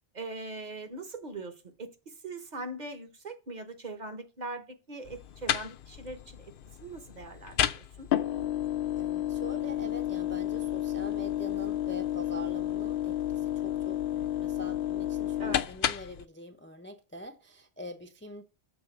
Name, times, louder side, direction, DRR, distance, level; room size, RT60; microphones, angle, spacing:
voice 1, 0.1-1.5 1.8-6.5 6.8-8.1 15.4-15.7, right 2 dB, 45° right, 1.0 m, -41 dB
sound 1, 5.1-16.2, left 11 dB, 65° left, 0.7 m, -31 dB
voice 2, 9.0-18.4, left 1 dB, 15° left, 0.4 m, -44 dB
6.8 x 3.6 x 5.8 m
omnidirectional pair, 1.1 m